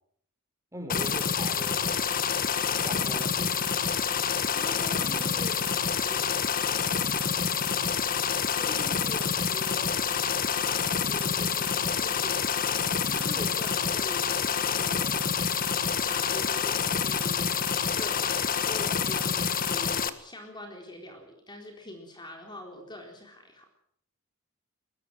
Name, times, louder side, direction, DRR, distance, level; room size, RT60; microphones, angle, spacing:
voice 1, 0.7-1.9 2.8-3.5 7.3-8.2, right 1 dB, 15° right, 5 dB, 5.2 m, -42 dB
sound 1, 0.9-20.1, left 7 dB, 45° left, 1.4 m, -27 dB
voice 2, 4.5-6.4 8.6-9.9 10.5-12.7 13.1-15.1 15.9-17.7 18.0-23.6, left 1 dB, 20° left, 2 dB, 4.0 m, -43 dB
21.5 x 19.0 x 7.8 m, 0.68 s
head